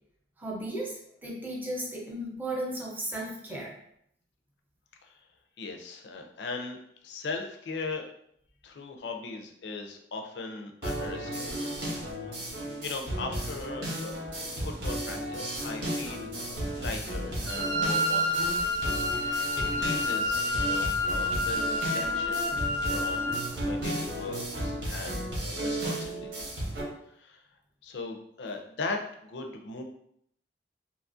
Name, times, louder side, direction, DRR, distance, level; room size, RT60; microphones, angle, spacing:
voice 1, 0.4-3.7, right 1 dB, 10° right, -3 dB, 0.6 m, -35 dB
voice 2, 5.6-6.8 7.0-8.1 8.6-11.7 12.2-14.2 14.5-18.5 19.1-26.6 27.1-27.4 27.8-29.8, left 3 dB, 70° left, 4 dB, 0.4 m, -39 dB
sound 1, 10.8-26.8, right 1 dB, 90° right, 1.0 m, -34 dB
Wind instrument woodwind instrument, 17.5-23.5, left 2 dB, 65° right, 0.5 m, -29 dB
2.8 x 2.3 x 2.5 m, 0.71 s
head